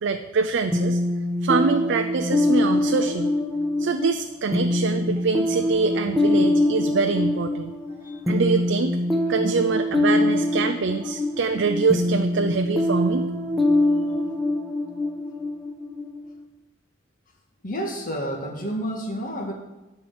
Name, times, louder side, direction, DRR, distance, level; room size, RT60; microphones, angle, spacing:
voice 1, 0.0-1.0 1.4-3.3 3.8-7.7 8.3-9.0 9.3-13.3, right 4 dB, 65° right, 6 dB, 0.5 m, -24 dB
sound 1, 0.7-16.3, left 1 dB, ahead, 1.2 m, -24 dB
voice 2, 17.6-19.5, equal, 45° left, 1 dB, 1.8 m, -30 dB
11.5 x 4.6 x 8.0 m, 1.1 s
head